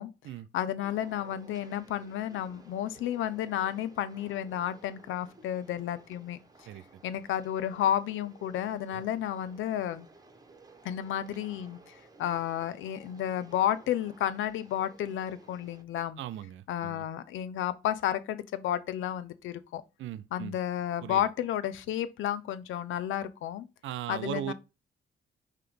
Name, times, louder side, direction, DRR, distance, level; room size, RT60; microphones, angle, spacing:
voice 1, 0.5-6.4 7.0-10.1 10.8-16.2 16.7-19.8 20.3-23.7 24.1-24.5, left 11 dB, 80° left, 0.7 m, -32 dB
sound 1, 0.8-15.8, right 3 dB, 20° right, 1.2 m, -56 dB
voice 2, 16.2-17.1 20.0-20.6 21.0-21.3 23.8-24.5, right 12 dB, 75° right, 0.5 m, -38 dB
5.8 x 3.2 x 5.1 m
cardioid pair, 90°, 20 cm